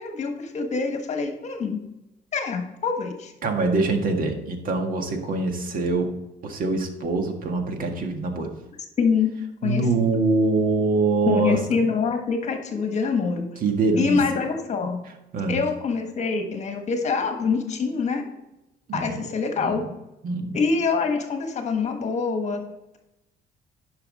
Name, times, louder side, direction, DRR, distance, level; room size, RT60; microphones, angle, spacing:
voice 1, 0.0-1.8 2.3-3.3 9.0-9.3 9.6-9.9 11.3-13.5 13.9-15.0 15.5-18.2 18.9-19.8 20.5-22.6, left 5 dB, 40° left, 5 dB, 1.4 m, -25 dB
voice 2, 3.4-6.1 6.4-8.5 9.6-11.6 13.6-14.2 15.3-15.6 18.9-19.2 19.6-19.8 20.2-20.6, right 3 dB, 55° right, 4 dB, 1.7 m, -24 dB
10.5 x 5.8 x 4.2 m, 0.94 s
cardioid pair, 110°, 17 cm